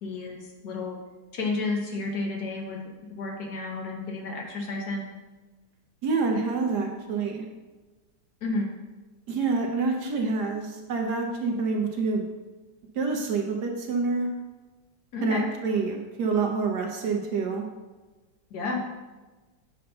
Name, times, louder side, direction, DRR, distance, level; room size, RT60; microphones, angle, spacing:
voice 1, 0.0-0.4 0.6-1.0 1.3-2.8 3.1-5.1 8.4-8.7 15.1-15.5 18.5-18.8, left 3 dB, 60° left, 1 dB, 1.2 m, -31 dB
voice 2, 6.0-7.4 9.3-12.3 12.9-14.3 15.2-17.7, right 4 dB, 65° right, 2 dB, 1.2 m, -27 dB
7.6 x 2.8 x 5.3 m, 1.2 s
omnidirectional pair, 2.1 m